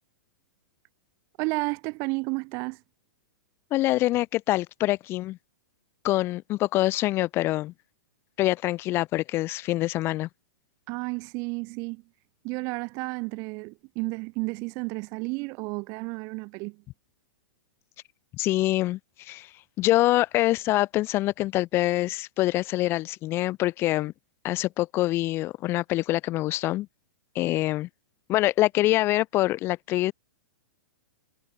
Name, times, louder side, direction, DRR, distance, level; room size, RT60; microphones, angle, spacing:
voice 1, 1.4-2.8 10.9-12.0 12.4-16.8, right 30 dB, 30° right, 7.6 m, -32 dB
voice 2, 3.7-5.4 6.0-7.7 8.4-10.3 18.3-24.1 24.4-26.9 27.4-27.9 28.3-30.1, left 17 dB, 25° left, 6.9 m, -25 dB
hypercardioid pair, 170°, 10 cm